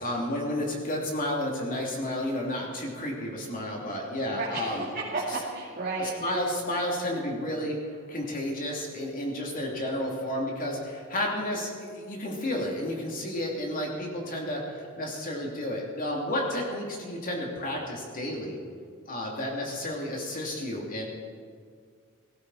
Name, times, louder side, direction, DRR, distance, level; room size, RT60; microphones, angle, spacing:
voice 1, 0.0-4.9 6.0-7.8 8.1-18.6 19.1-21.1, left 1 dB, 40° left, -1 dB, 2.9 m, -31 dB
voice 2, 4.3-6.4, right 3 dB, 45° right, -5 dB, 2.3 m, -33 dB
17.5 x 15.5 x 4.2 m, 2.1 s
head